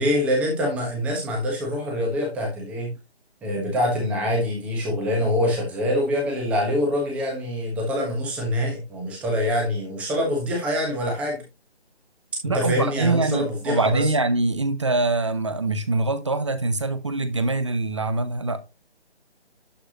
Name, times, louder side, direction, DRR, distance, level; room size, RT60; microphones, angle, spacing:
voice 1, 0.0-2.9 3.4-11.4 12.4-14.1, equal, 5° right, 1.1 m, -25 dB
voice 2, 12.4-18.6, right 2 dB, 30° right, 0.6 m, -24 dB
11.5 x 4.8 x 2.9 m
hypercardioid pair, 165°, 33 cm